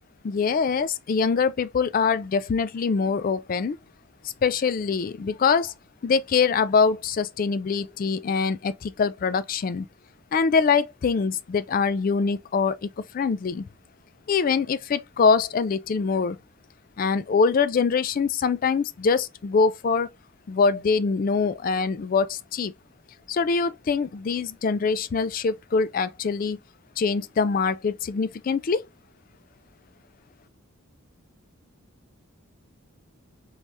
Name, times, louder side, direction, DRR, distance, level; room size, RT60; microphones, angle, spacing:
voice 1, 0.2-3.8 4.4-5.7 6.0-9.9 10.3-12.9 13.1-13.6 14.3-16.4 17.0-20.1 20.5-22.7 23.3-26.6 27.0-28.8, left 5 dB, 40° left, 0.3 m, -24 dB
4.7 x 3.3 x 2.6 m
head